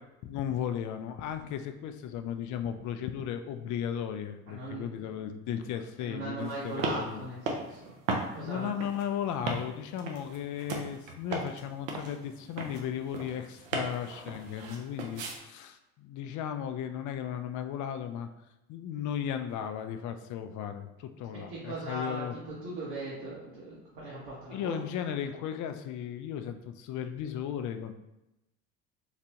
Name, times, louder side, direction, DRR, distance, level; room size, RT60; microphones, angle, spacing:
voice 1, 0.2-7.3 8.4-18.3 18.7-22.3 24.5-27.9, left 9 dB, 50° left, 8 dB, 0.4 m, -35 dB
voice 2, 4.5-5.1 6.0-7.9 8.3-8.7 21.3-24.8, right 2 dB, 70° right, -7 dB, 1.2 m, -39 dB
sound 1, 6.4-15.4, right 3 dB, 90° right, 0.6 m, -37 dB
4.0 x 2.2 x 2.8 m, 0.94 s
hypercardioid pair, 75°, 39 cm